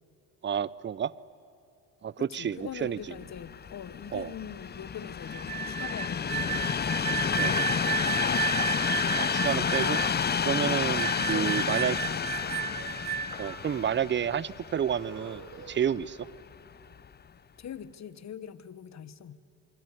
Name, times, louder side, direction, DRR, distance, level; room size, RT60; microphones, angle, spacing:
voice 1, 0.4-1.1 2.0-3.0 4.1-4.3 7.4-7.6 9.1-10.0 10.4-12.0 13.4-16.3, right 8 dB, 30° right, 20 dB, 0.7 m, -30 dB
voice 2, 2.2-6.8 7.5-8.4 10.7-12.6 17.6-19.4, left 8 dB, 50° left, 15 dB, 1.4 m, -42 dB
Train, 3.0-16.2 16.9-17.1, left 7 dB, 30° left, 0.7 m, -30 dB
sound 1, 5.3-13.5, right 8 dB, 75° right, 1.3 m, -33 dB
sound 2, 5.9-6.3 7.3-8.2 9.3-10.2 11.0-11.9 12.3-14.1 14.9-16.4 17.5-17.7, right 5 dB, 50° right, 4.9 m, -51 dB
25.0 x 24.0 x 9.9 m, 2.7 s
supercardioid pair, 80°, 36 cm